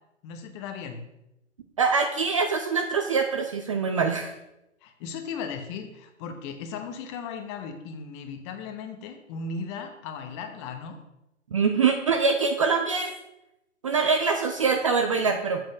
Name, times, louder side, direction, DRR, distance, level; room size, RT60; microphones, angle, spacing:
voice 1, 0.2-1.0 4.8-11.0, left 5 dB, 25° left, 6 dB, 0.8 m, -36 dB
voice 2, 1.8-4.3 11.5-13.1 13.8-15.6, right 5 dB, 30° right, 5 dB, 0.4 m, -24 dB
7.5 x 5.2 x 6.2 m, 0.89 s
figure-of-eight pair, 125°, 37 cm